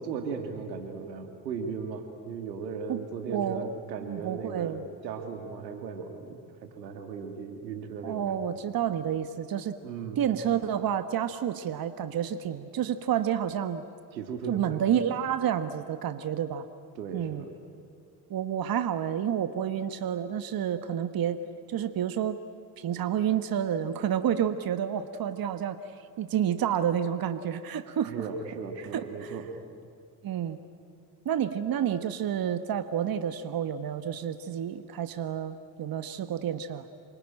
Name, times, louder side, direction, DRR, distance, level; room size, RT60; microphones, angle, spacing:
voice 1, 0.0-8.4 9.8-10.2 14.1-14.8 16.9-17.4 28.1-29.5, right 5 dB, 85° right, 5 dB, 2.4 m, -37 dB
voice 2, 2.9-3.7 4.0-4.8 8.0-9.8 10.2-13.8 14.5-16.7 17.1-17.4 18.3-21.4 21.7-22.4 22.8-28.3 28.9-29.3 30.2-30.6 31.2-36.9, right 9 dB, 45° right, 11 dB, 1.3 m, -29 dB
27.0 x 24.0 x 9.0 m, 2.4 s
hypercardioid pair, 50°, 50 cm